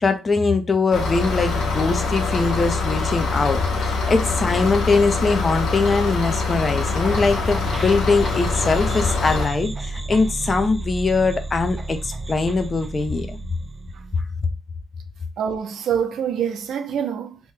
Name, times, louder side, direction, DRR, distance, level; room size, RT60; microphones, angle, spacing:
voice 1, 0.0-13.4, left 4 dB, 35° left, 0.6 m, -22 dB
sound 1, 0.9-9.5, left 3 dB, 75° left, 1.0 m, -24 dB
sound 2, 7.0-14.2, right 2 dB, 20° right, 0.4 m, -32 dB
voice 2, 15.4-17.4, right 8 dB, 70° right, 0.6 m, -25 dB
3.0 x 2.7 x 3.6 m
cardioid pair, 90°, 0 cm